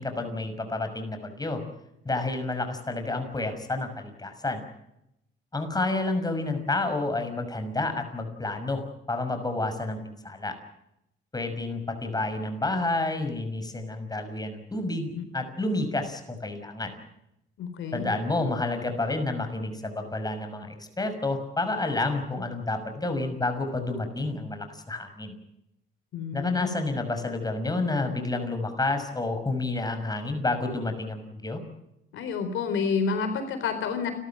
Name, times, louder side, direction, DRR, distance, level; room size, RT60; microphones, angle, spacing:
voice 1, 0.0-1.6 2.0-4.6 5.5-10.0 10.2-10.5 11.3-16.9 17.9-25.4 26.3-31.6, left 2 dB, 20° left, 7 dB, 6.1 m, -30 dB
voice 2, 17.6-18.1 26.1-26.7 32.1-34.1, left 5 dB, 80° left, 8 dB, 4.2 m, -29 dB
30.0 x 13.5 x 9.1 m, 0.83 s
cardioid pair, 90°, 20 cm